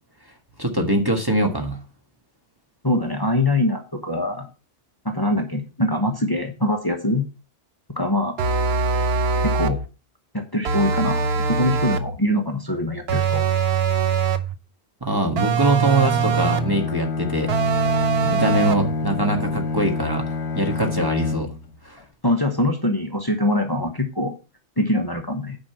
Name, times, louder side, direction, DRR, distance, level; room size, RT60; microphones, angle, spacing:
voice 1, 0.6-1.8 15.0-17.5 18.2-21.5 21.8-22.0, right 2 dB, 20° right, 2 dB, 1.5 m, -23 dB
voice 2, 2.8-4.5 5.0-7.2 7.9-8.4 9.4-9.8 10.3-13.4 22.2-24.3 24.8-25.6, left 1 dB, 20° left, 4 dB, 1.2 m, -23 dB
sound 1, 8.4-9.9 10.6-12.2 13.1-14.5 15.4-16.8 17.5-18.9, right 5 dB, 70° right, 1.0 m, -22 dB
Bowed string instrument, 15.8-21.8, left 4 dB, 75° left, 1.3 m, -28 dB
9.5 x 5.3 x 5.7 m, 0.32 s
omnidirectional pair, 1.1 m